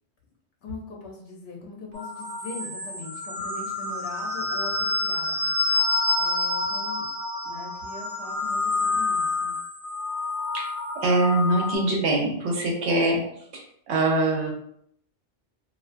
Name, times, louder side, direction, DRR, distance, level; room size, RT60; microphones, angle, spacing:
voice 1, 0.6-5.5 6.1-7.1 7.4-9.5, left 3 dB, 65° left, 0 dB, 0.9 m, -41 dB
sound 1, 1.9-11.8, left 2 dB, 40° right, 0.6 m, -28 dB
voice 2, 11.0-13.2 13.5-14.5, right 2 dB, 75° right, 0 dB, 0.9 m, -23 dB
2.4 x 2.2 x 2.4 m, 0.70 s
omnidirectional pair, 1.2 m